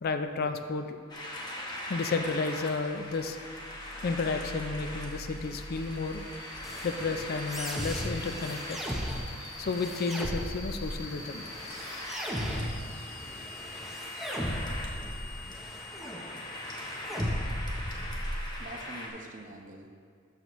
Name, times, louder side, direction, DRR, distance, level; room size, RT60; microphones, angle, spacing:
voice 1, 0.0-1.0 1.9-3.4 4.0-6.2 6.8-8.8 9.6-11.4, left 4 dB, 45° left, 8 dB, 0.4 m, -32 dB
sound 1, 1.1-19.1, left 1 dB, 20° left, 1.0 m, -42 dB
sound 2, 2.9-19.2, left 2 dB, 75° left, 1.3 m, -47 dB
sound 3, 6.6-18.6, equal, ahead, 0.7 m, -37 dB
voice 2, 18.3-20.0, right 1 dB, 35° right, 2 dB, 0.8 m, -46 dB
12.5 x 6.9 x 3.0 m, 2.2 s
head